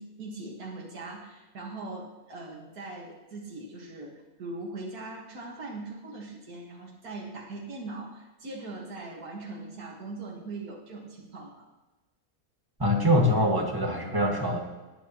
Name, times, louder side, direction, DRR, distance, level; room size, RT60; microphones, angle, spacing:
voice 1, 0.0-11.6, right 2 dB, 90° right, -2 dB, 2.3 m, -40 dB
voice 2, 12.8-14.6, left 1 dB, 15° right, 0 dB, 1.7 m, -24 dB
18.5 x 9.3 x 3.0 m, 1.1 s
omnidirectional pair, 1.6 m